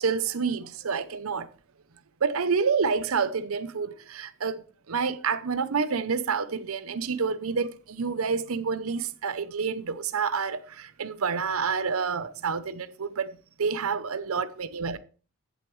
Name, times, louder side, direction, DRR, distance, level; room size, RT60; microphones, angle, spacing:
voice 1, 0.0-1.5 2.2-4.6 4.9-13.3 13.6-15.0, right 5 dB, 80° right, 0.7 m, -28 dB
15.0 x 8.0 x 3.2 m
head